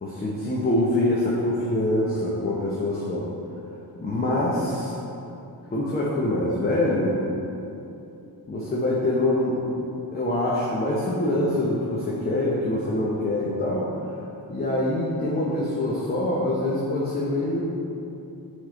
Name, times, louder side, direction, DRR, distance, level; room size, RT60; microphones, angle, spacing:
voice 1, 0.0-3.3 4.0-4.9 5.7-7.2 8.5-9.8 10.1-13.9 14.5-17.7, left 1 dB, 25° left, -5 dB, 0.8 m, -25 dB
7.8 x 3.7 x 3.7 m, 2.8 s
cardioid pair, 125°, 36 cm